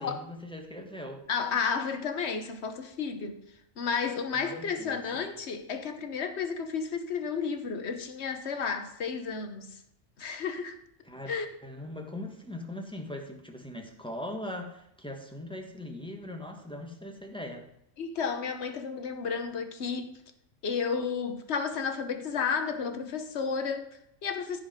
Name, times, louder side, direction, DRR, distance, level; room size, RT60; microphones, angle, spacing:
voice 1, 0.0-1.2 4.3-5.2 11.0-11.3 11.6-17.7, left 1 dB, 5° left, 1.4 m, -40 dB
voice 2, 1.3-3.4 3.8-9.8 10.2-10.8 11.3-11.5 18.0-20.2 20.6-24.6, left 6 dB, 65° left, 1.3 m, -32 dB
14.0 x 4.9 x 5.2 m
omnidirectional pair, 1.3 m